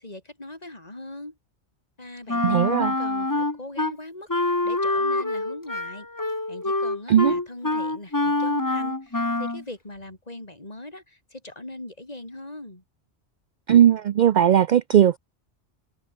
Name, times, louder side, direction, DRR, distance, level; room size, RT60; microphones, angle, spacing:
voice 1, 0.0-1.4 2.0-6.1 6.5-12.8, left 1 dB, 35° left, 3.8 m, -40 dB
Wind instrument woodwind instrument, 2.3-3.9 4.3-9.6, left 2 dB, 20° left, 1.2 m, -25 dB
voice 2, 2.4-2.9 7.1-7.3 13.7-15.2, right 10 dB, 55° right, 0.5 m, -18 dB
omnidirectional pair, 1.2 m